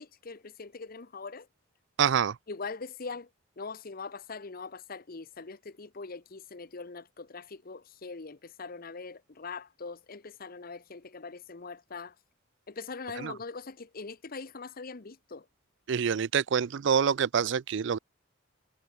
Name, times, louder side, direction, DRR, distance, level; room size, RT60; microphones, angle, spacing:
voice 1, 0.0-1.5 2.5-3.3 3.6-12.1 12.7-15.5, left 4 dB, 45° left, 0.9 m, -42 dB
voice 2, 2.0-2.4 13.2-13.3 15.9-18.0, right 7 dB, 65° right, 0.4 m, -26 dB
head